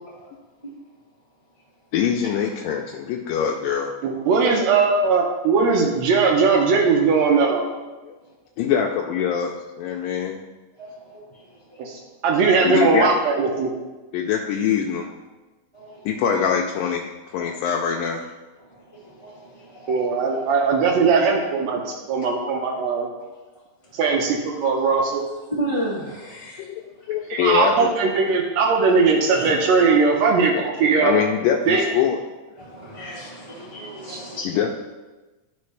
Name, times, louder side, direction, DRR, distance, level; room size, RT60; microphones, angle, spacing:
voice 1, 1.9-3.9 8.1-8.2 8.6-10.4 12.6-13.1 14.1-15.1 16.1-17.0 17.3-18.2 26.6-26.7 27.1-27.9 30.6-32.2 34.5-34.7, left 8 dB, 85° left, 1 dB, 2.2 m, -23 dB
voice 2, 4.0-7.6 11.8-13.7 19.9-23.1 23.9-25.2 27.3-31.2 31.7-31.8 34.1-34.2, right 4 dB, 75° right, 1 dB, 1.6 m, -19 dB
voice 3, 10.8-11.8 15.7-16.1 17.4-17.5 18.6-20.4 22.7-22.8 23.9-24.0 25.5-26.7 27.2-27.3 29.3-29.5 31.7-31.8 32.6-34.5, right 1 dB, 20° right, -7 dB, 0.8 m, -34 dB
11.5 x 4.3 x 3.2 m, 1.2 s
omnidirectional pair, 3.8 m